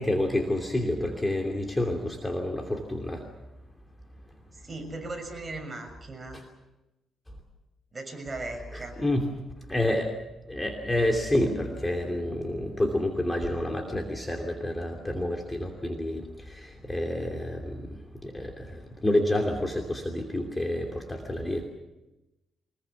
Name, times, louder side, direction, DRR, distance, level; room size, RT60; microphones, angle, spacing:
voice 1, 0.0-3.2 6.3-6.4 8.7-9.3 9.7-10.1 10.5-21.7, left 1 dB, 15° left, 2 dB, 2.9 m, -29 dB
voice 2, 4.6-6.4 7.9-9.0, right 2 dB, 25° right, 3 dB, 6.7 m, -38 dB
24.5 x 21.5 x 7.1 m, 0.99 s
cardioid pair, 115°, 0 cm